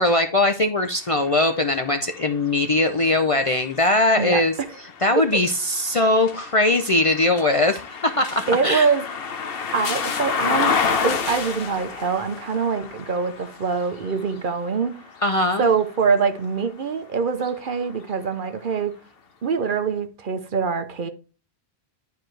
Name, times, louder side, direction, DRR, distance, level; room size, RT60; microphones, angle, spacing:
voice 1, 0.0-4.5 5.0-8.9 15.2-15.7, left 2 dB, 40° left, 0.6 m, -20 dB
sound 1, 0.8-16.7 17.3-18.5, left 5 dB, 60° left, 1.1 m, -31 dB
voice 2, 8.5-9.0 9.7-10.8 11.0-15.0 15.6-18.9 19.4-21.1, right 5 dB, 55° right, 0.9 m, -24 dB
11.0 x 4.6 x 3.2 m
omnidirectional pair, 1.1 m